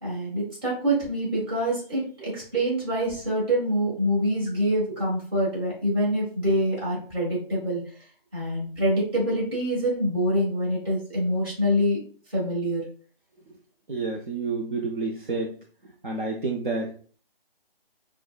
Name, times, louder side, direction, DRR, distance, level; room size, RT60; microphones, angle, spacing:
voice 1, 0.0-7.8 8.3-12.0 12.3-12.8, equal, 25° right, -7 dB, 1.5 m, -25 dB
voice 2, 13.9-15.6 16.0-16.9, right 3 dB, 55° right, -1 dB, 0.6 m, -29 dB
4.3 x 2.2 x 2.3 m, 0.43 s
figure-of-eight pair, 160°, 30 cm